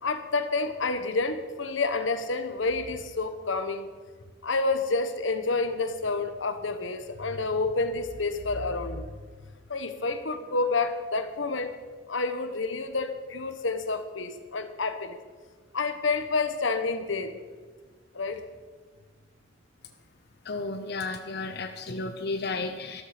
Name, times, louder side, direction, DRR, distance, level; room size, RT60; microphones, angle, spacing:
voice 1, 0.0-3.9 4.4-9.1 9.7-11.7 12.1-15.2 15.7-17.4 18.1-18.4, left 3 dB, 85° left, 9 dB, 1.2 m, -29 dB
voice 2, 20.4-23.0, left 3 dB, 60° left, 6 dB, 0.8 m, -33 dB
13.5 x 13.0 x 5.1 m, 1.5 s
head